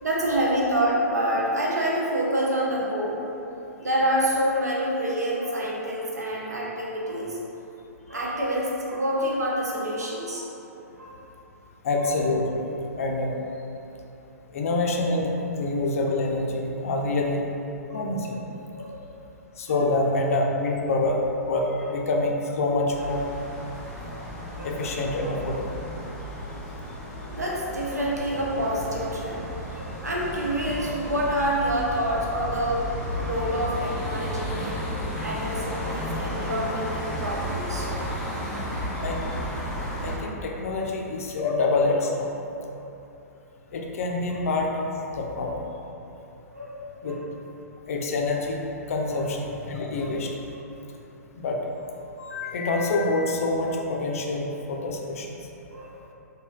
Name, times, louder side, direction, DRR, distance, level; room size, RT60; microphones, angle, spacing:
voice 1, 0.0-3.2 3.8-7.4 8.1-10.5 11.0-11.2 12.0-12.1 15.6-15.7 17.9-18.1 18.7-19.0 19.7-19.8 24.5-24.8 25.2-25.3 27.3-32.9 33.2-38.6 40.8-41.0 41.4-41.6 42.7-42.9 44.3-44.4 45.3-45.5 46.5-47.2 49.1-49.3 50.0-50.1 50.5-50.6 55.7-56.0, equal, 85° right, -4 dB, 0.6 m, -28 dB
voice 2, 11.8-12.6 13.0-13.3 14.5-17.4 17.9-18.4 19.6-23.2 24.6-25.8 39.0-39.2 40.0-42.3 43.7-45.6 47.0-47.2 47.9-48.6 48.9-50.3 51.4-51.6 52.2-55.3, left 2 dB, 60° left, 0 dB, 0.4 m, -26 dB
sound 1, 22.9-40.2, equal, 10° left, 0.7 m, -33 dB
3.1 x 2.7 x 2.3 m, 2.9 s
figure-of-eight pair, 115°, 9 cm